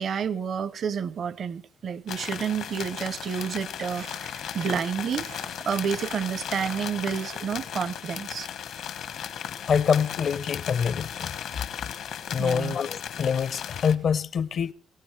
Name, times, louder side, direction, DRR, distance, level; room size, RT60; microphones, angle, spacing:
voice 1, 0.0-5.3 5.7-8.5 12.4-12.7, right 7 dB, 55° right, 0.7 m, -30 dB
sound 1, 2.1-14.0, left 9 dB, 80° left, 1.6 m, -36 dB
sound 2, 2.6-2.9 3.2-3.5 3.8-4.9 5.2-5.5 5.8-7.5, right 8 dB, 85° right, 3.1 m, -46 dB
voice 2, 9.6-11.3 12.3-14.7, left 7 dB, 60° left, 0.7 m, -25 dB
24.5 x 17.0 x 3.3 m
cardioid pair, 90°, 0 cm